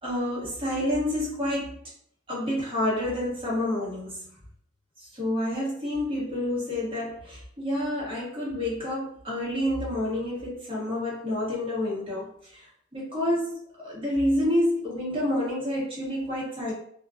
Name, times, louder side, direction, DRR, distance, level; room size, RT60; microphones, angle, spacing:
voice 1, 0.0-1.7 2.3-4.3 5.0-16.7, left 1 dB, 30° right, -6 dB, 0.9 m, -29 dB
2.3 x 2.1 x 2.4 m, 0.65 s
head